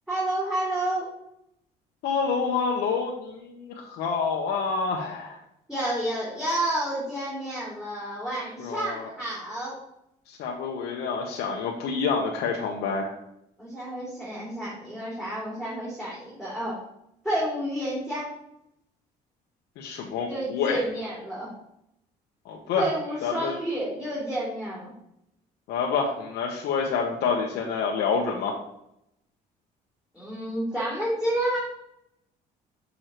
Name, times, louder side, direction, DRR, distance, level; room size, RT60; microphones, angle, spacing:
voice 1, 0.1-1.1 5.7-9.8 13.6-16.8 17.2-18.3 20.3-21.5 22.8-24.9 30.1-31.6, right 1 dB, 5° right, -7 dB, 2.6 m, -30 dB
voice 2, 2.0-5.4 8.6-9.1 10.3-13.1 19.8-20.8 22.4-22.9 23.2-23.5 25.7-28.5, left 5 dB, 80° left, -1 dB, 1.0 m, -27 dB
6.6 x 6.1 x 3.0 m, 0.79 s
cardioid pair, 110°, 17 cm